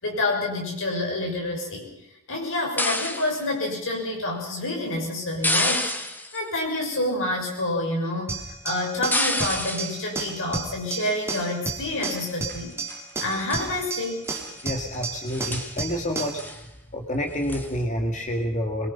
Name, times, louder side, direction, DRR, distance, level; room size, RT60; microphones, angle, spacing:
voice 1, 0.0-1.9 2.3-5.9 6.3-12.7 13.2-14.3, left 2 dB, 60° left, 0 dB, 6.5 m, -28 dB
sound 1, 2.8-3.4 5.4-6.4 9.1-10.0 11.0-11.4 12.0-12.6 12.9-13.0 13.3-13.7 14.2-14.6 14.9-15.0 15.3-15.8 16.4-16.6 17.5-17.7, left 1 dB, 10° left, 1.5 m, -28 dB
sound 2, 8.3-16.4, right 3 dB, 10° right, 2.6 m, -33 dB
voice 2, 14.6-16.4 16.9-18.9, equal, 35° left, 3 dB, 1.9 m, -28 dB
24.0 x 22.5 x 5.7 m, 0.84 s
head